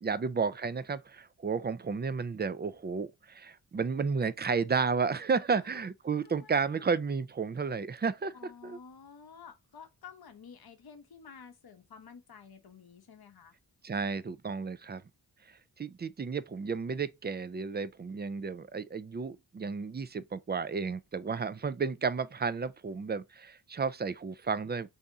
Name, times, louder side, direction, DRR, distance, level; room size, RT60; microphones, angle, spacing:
voice 1, 0.0-8.3 8.6-8.8 13.8-15.0 15.8-24.9, right 5 dB, 25° right, 0.4 m, -32 dB
voice 2, 5.5-5.8 6.2-6.9 8.3-13.6, left 6 dB, 55° left, 0.9 m, -52 dB
3.5 x 2.8 x 3.7 m
cardioid pair, 65°, 44 cm